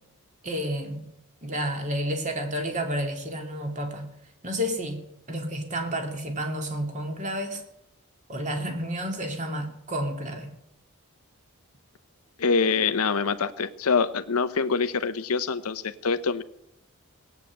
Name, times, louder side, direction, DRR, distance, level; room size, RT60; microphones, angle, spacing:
voice 1, 0.4-1.0 1.4-4.1 4.4-5.0 5.3-7.6 8.3-10.5, equal, 35° right, 4 dB, 2.7 m, -30 dB
voice 2, 12.4-16.4, left 5 dB, 85° left, 11 dB, 0.8 m, -25 dB
18.0 x 8.2 x 8.6 m, 0.81 s
head